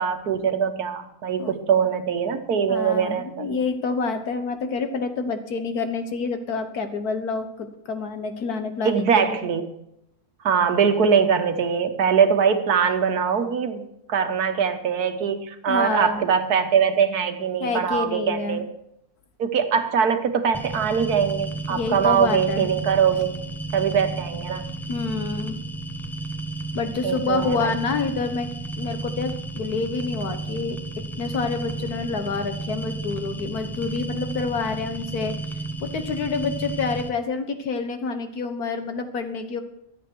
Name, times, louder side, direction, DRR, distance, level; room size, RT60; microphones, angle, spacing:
voice 1, 0.0-3.5 8.8-9.7 10.4-18.6 19.4-23.3 23.7-24.6 27.0-27.7, right 7 dB, 85° right, 8 dB, 1.7 m, -22 dB
voice 2, 2.7-9.4 15.7-16.2 17.6-18.6 21.7-22.7 24.9-25.6 26.8-28.5 28.8-35.4 35.8-39.6, left 4 dB, 80° left, 8 dB, 1.8 m, -28 dB
sound 1, 20.5-37.1, right 2 dB, ahead, 1.0 m, -33 dB
23.5 x 7.9 x 4.6 m, 0.79 s
omnidirectional pair, 1.6 m